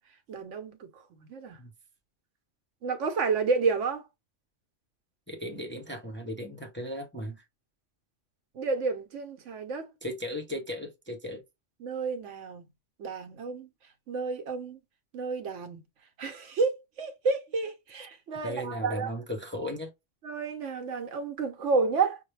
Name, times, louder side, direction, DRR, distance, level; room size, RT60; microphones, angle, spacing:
voice 1, 0.3-0.9 1.3-1.6 2.8-4.0 8.6-9.9 11.8-12.6 13.0-13.7 14.1-14.8 15.1-15.8 16.2-19.1 20.2-22.2, right 4 dB, 80° right, 1.1 m, -30 dB
voice 2, 5.3-7.4 10.0-11.4 18.4-19.9, equal, 15° left, 0.6 m, -36 dB
5.4 x 2.2 x 3.2 m
omnidirectional pair, 1.2 m